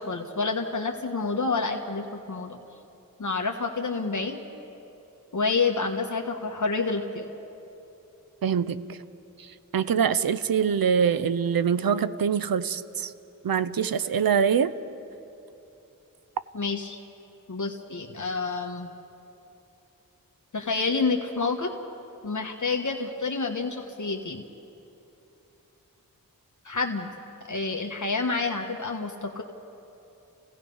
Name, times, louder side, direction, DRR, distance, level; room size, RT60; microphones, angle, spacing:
voice 1, 0.0-2.6 3.2-4.4 5.3-7.3 16.5-17.0 17.5-18.9 20.5-21.7 22.2-24.4 26.6-27.1 27.4-29.4, left 4 dB, 60° left, 2 dB, 1.4 m, -28 dB
voice 2, 8.4-9.0 9.4-9.5 9.7-13.1 13.4-14.7, right 7 dB, 85° right, 14 dB, 0.7 m, -24 dB
30.0 x 17.0 x 5.5 m, 2.9 s
wide cardioid pair, 50°, 34 cm